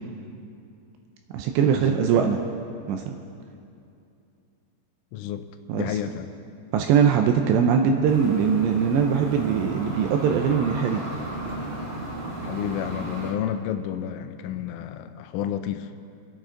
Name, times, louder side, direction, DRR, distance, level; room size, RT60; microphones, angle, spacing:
voice 1, 1.3-2.4 2.9-3.1 5.7-6.0 6.7-11.0, right 7 dB, 85° right, 4 dB, 2.5 m, -21 dB
voice 2, 5.1-5.5 5.7-6.3 12.4-15.9, left 10 dB, 85° left, 9 dB, 3.1 m, -31 dB
sound 1, 8.0-13.3, right 1 dB, 50° right, 2.3 m, -34 dB
25.5 x 9.3 x 3.8 m, 2.6 s
omnidirectional pair, 5.6 m